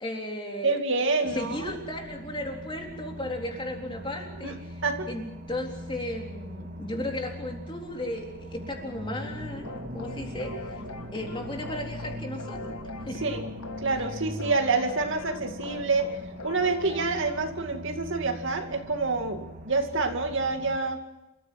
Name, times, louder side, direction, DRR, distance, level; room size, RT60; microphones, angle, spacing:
voice 1, 0.0-4.8 5.1-9.7 9.9-10.8 11.1-12.7 13.0-13.2, left 1 dB, 20° left, 1 dB, 3.8 m, -35 dB
voice 2, 0.6-1.8 4.4-4.5 4.8-5.1 13.2-13.4 13.8-16.1 16.4-21.0, right 3 dB, 55° right, 5 dB, 2.4 m, -27 dB
sound 1, 1.3-20.8, equal, 40° right, 2.3 m, -41 dB
sound 2, 9.6-17.6, left 4 dB, 85° left, 1.9 m, -43 dB
28.0 x 15.0 x 7.7 m, 0.96 s
head